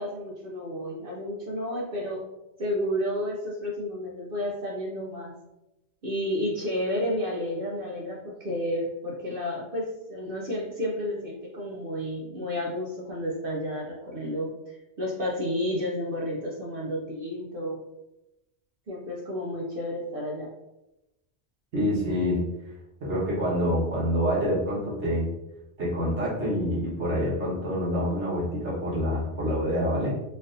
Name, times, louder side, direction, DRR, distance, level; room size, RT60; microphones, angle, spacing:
voice 1, 0.0-2.2 2.6-5.3 6.0-17.8 18.9-20.5, left 1 dB, 55° right, -3 dB, 0.8 m, -31 dB
voice 2, 21.7-22.4 23.0-25.3 25.8-30.1, equal, 70° right, -7 dB, 1.7 m, -26 dB
4.0 x 2.6 x 2.5 m, 0.92 s
omnidirectional pair, 1.2 m